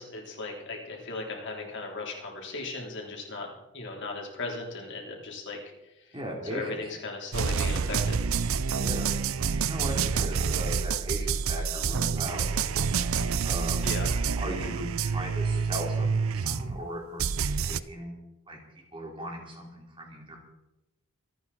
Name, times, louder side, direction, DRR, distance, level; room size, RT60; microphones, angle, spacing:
voice 1, 0.0-5.6 5.8-6.2 6.5-8.2 13.8-14.3, left 3 dB, 55° left, 0 dB, 3.6 m, -37 dB
voice 2, 6.1-6.8 8.7-9.1 9.7-12.4 13.4-13.9 14.4-18.1 18.5-20.4, equal, 25° right, 0 dB, 3.3 m, -38 dB
sound 1, 7.3-16.9 17.2-17.8, right 5 dB, 65° right, 0.6 m, -28 dB
26.0 x 9.3 x 4.2 m, 0.94 s
head